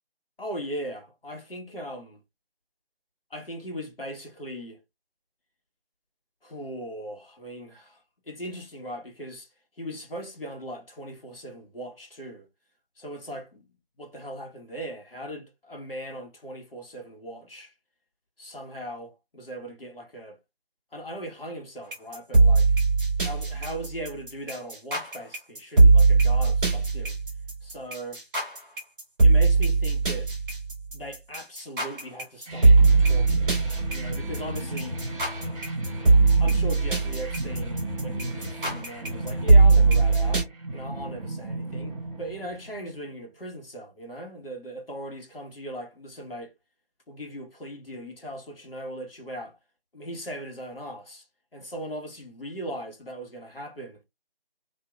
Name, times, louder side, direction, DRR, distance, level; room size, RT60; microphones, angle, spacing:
voice 1, 0.4-2.2 3.3-4.8 6.4-8.0 8.3-9.5 9.8-12.5 13.0-13.6 14.0-17.7 18.4-20.4 20.9-22.8 23.2-27.2 27.6-28.2 29.2-30.3 30.9-33.5 33.9-35.0 36.4-46.5 47.1-49.6 49.9-51.3 51.5-54.0, equal, 65° left, 1.4 m, -39 dB
sound 1, 21.9-40.4, right 3 dB, 5° right, 1.5 m, -20 dB
sound 2, 32.5-43.0, right 1 dB, 35° right, 1.3 m, -33 dB
3.0 x 2.7 x 2.3 m
figure-of-eight pair, 160°, 30 cm